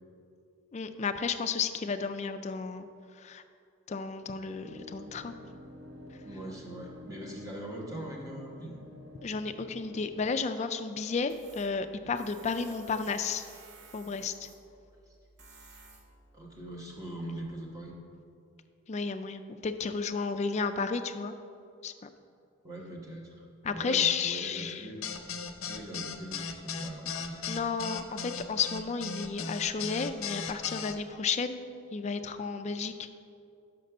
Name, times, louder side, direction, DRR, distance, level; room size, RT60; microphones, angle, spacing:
voice 1, 0.7-2.9 3.2-3.4 3.9-5.3 9.2-13.5 13.9-14.5 18.9-21.3 21.8-21.9 23.6-24.9 27.5-33.1, left 5 dB, 35° left, 9 dB, 0.3 m, -32 dB
sound 1, 4.6-10.3, left 1 dB, 85° right, 1.1 m, -49 dB
voice 2, 6.2-8.8 16.3-17.9 22.6-25.1 25.6-27.7, right 1 dB, 15° right, -3 dB, 1.2 m, -42 dB
Tools, 11.3-17.4, right 3 dB, 55° right, 0.8 m, -55 dB
sound 2, 25.0-30.9, left 5 dB, 80° left, 0.5 m, -37 dB
5.9 x 5.4 x 6.5 m, 2.4 s
head